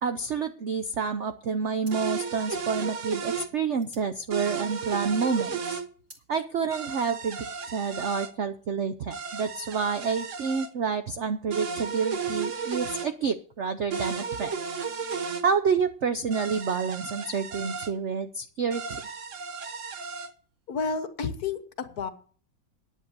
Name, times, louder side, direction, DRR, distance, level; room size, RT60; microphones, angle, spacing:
voice 1, 0.0-5.8 6.3-7.5 7.7-14.5 15.4-19.0, right 5 dB, 65° right, 9 dB, 0.7 m, -28 dB
sound 1, 1.8-5.2 5.5-6.3, right 1 dB, 25° right, 2.7 m, -55 dB
sound 2, 1.9-3.5 4.3-5.8 6.7-8.3 9.1-10.7 11.5-13.1 13.9-15.4 16.3-17.9 18.7-20.3, right 5 dB, 50° right, 1.1 m, -34 dB
voice 2, 20.7-22.1, left 5 dB, 55° left, 10 dB, 1.4 m, -31 dB
10.5 x 8.8 x 6.7 m, 0.44 s
omnidirectional pair, 2.1 m